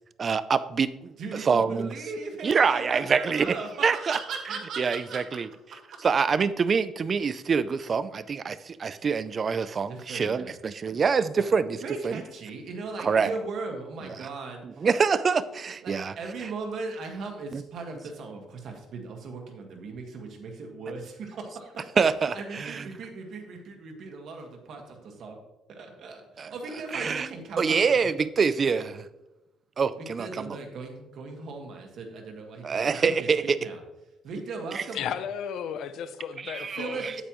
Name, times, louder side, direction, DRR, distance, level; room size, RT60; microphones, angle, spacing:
voice 1, 0.2-1.1 1.4-1.9 2.4-3.6 3.8-4.2 4.8-5.5 6.0-11.8 12.0-12.1 13.0-13.3 14.8-16.1 17.5-17.6 22.0-22.8 26.4-26.5 26.9-27.3 27.6-29.1 29.8-30.6 32.6-33.6 34.7-34.8 36.4-37.1, right 5 dB, 30° right, 15 dB, 0.4 m, -25 dB
voice 2, 1.2-5.2 5.9-6.0 9.9-10.5 11.3-11.5 11.8-14.9 15.8-21.9 22.3-25.4 25.7-28.2 30.0-33.3 33.6-33.8 34.2-35.1 36.7-37.2, right 3 dB, 50° right, 3 dB, 1.5 m, -38 dB
voice 3, 34.9-37.0, left 8 dB, 60° left, 12 dB, 0.6 m, -34 dB
8.9 x 8.4 x 3.0 m, 0.98 s
cardioid pair, 160°, 0 cm